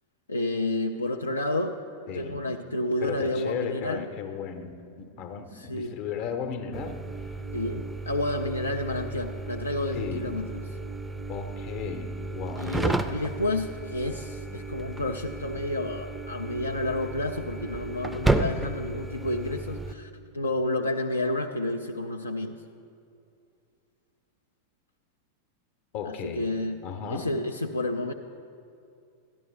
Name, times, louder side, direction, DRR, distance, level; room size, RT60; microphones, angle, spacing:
voice 1, 0.3-1.8 2.1-4.0 5.5-5.9 7.5-10.6 12.6-22.5 26.0-26.8 27.1-28.1, left 1 dB, 80° left, 4 dB, 0.4 m, -30 dB
voice 2, 2.1-2.5 3.0-7.0 9.9-10.4 11.3-12.8 25.9-26.5 26.8-27.3, left 7 dB, 45° left, 7 dB, 0.7 m, -35 dB
sound 1, 6.7-19.9, right 2 dB, 5° right, 0.4 m, -33 dB
13.0 x 10.5 x 3.2 m, 2.4 s
figure-of-eight pair, 90°, 0 cm